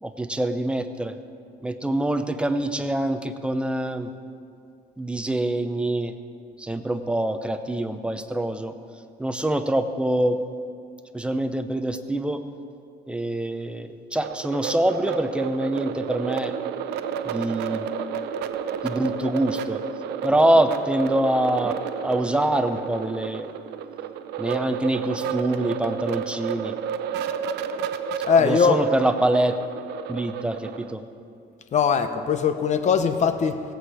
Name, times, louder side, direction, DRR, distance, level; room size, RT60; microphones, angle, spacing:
voice 1, 0.0-1.1 1.6-4.1 5.0-6.1 6.6-8.7 9.2-10.4 11.1-12.4 13.1-16.5 17.2-17.9 18.8-19.8 20.2-21.7 22.0-23.5 24.4-26.8 28.4-29.6 30.1-31.0, right 1 dB, 5° right, 8 dB, 0.7 m, -25 dB
sound 1, 14.2-30.9, right 8 dB, 80° right, 0.6 m, -31 dB
voice 2, 28.2-28.8 31.7-33.6, left 6 dB, 45° left, 9 dB, 0.9 m, -20 dB
17.0 x 8.0 x 4.9 m, 2.4 s
cardioid pair, 110°, 17 cm